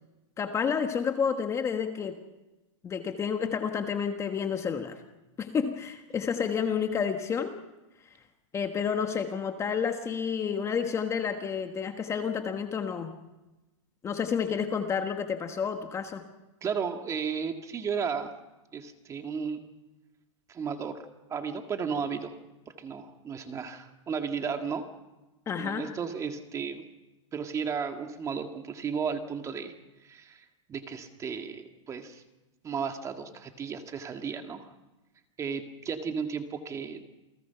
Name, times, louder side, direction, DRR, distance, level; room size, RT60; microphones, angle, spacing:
voice 1, 0.4-2.2 2.8-5.0 5.4-7.6 8.5-13.1 14.0-16.2 25.5-25.9, left 6 dB, 15° left, 6 dB, 1.3 m, -30 dB
voice 2, 16.6-18.3 18.7-19.6 20.5-21.0 21.3-22.4 22.8-24.9 25.6-26.8 27.3-29.7 30.0-32.2 32.6-34.7 35.4-37.0, right 6 dB, 20° right, 6 dB, 1.9 m, -34 dB
28.5 x 19.0 x 5.8 m, 1.1 s
supercardioid pair, 145°, 16 cm